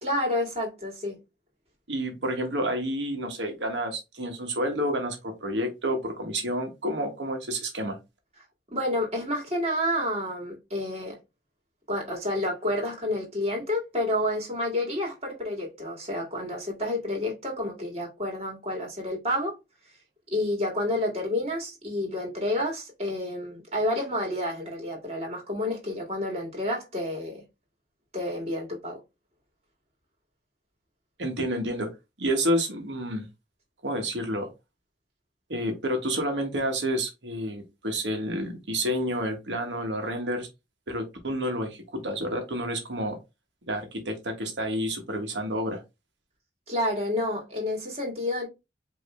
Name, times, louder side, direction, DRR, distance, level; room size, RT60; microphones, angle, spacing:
voice 1, 0.0-1.2 8.7-11.2 11.9-19.6 20.3-27.4 28.1-29.0 46.7-48.5, left 1 dB, 35° right, 2.1 m, -29 dB
voice 2, 1.9-8.0 31.2-31.9 32.2-33.3 33.8-34.5 35.5-40.5 40.9-43.2 43.6-45.8, equal, 80° right, 1.4 m, -29 dB
5.2 x 3.1 x 3.2 m
head